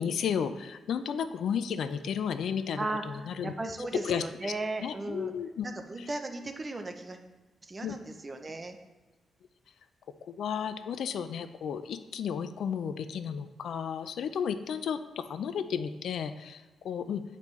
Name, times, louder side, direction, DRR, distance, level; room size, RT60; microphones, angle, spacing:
voice 1, 0.0-3.5 3.9-4.5 4.8-5.7 6.0-6.1 7.8-8.0 10.2-17.2, left 7 dB, 70° left, 11 dB, 0.4 m, -33 dB
voice 2, 2.8-5.3 5.6-7.2 7.6-8.8, right 2 dB, 25° right, 6 dB, 0.5 m, -36 dB
8.3 x 5.2 x 3.1 m, 1.2 s
wide cardioid pair, 145°, 0 cm